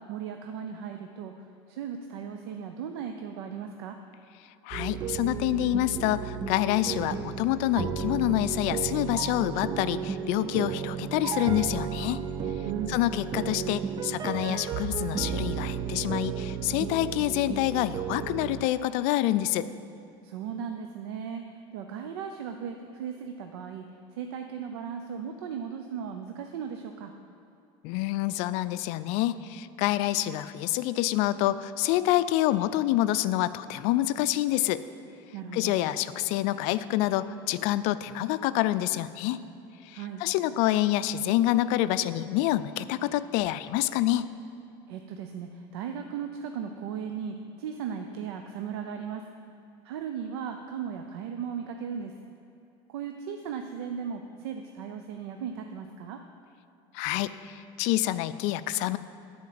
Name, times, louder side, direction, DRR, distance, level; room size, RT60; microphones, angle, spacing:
voice 1, 0.0-1.3 1.7-4.0 12.6-13.0 20.2-23.8 24.1-27.1 35.3-35.8 39.9-40.2 44.9-49.2 49.8-52.1 52.9-56.2, right 7 dB, 85° right, 5 dB, 0.5 m, -37 dB
voice 2, 4.6-12.2 12.9-19.7 27.8-34.8 35.5-39.4 39.9-44.3 56.9-59.0, left 14 dB, 65° left, 14 dB, 0.4 m, -27 dB
sound 1, 4.7-18.7, right 7 dB, 35° right, 0.6 m, -33 dB
10.5 x 4.3 x 7.5 m, 2.8 s
supercardioid pair, 105°, 13 cm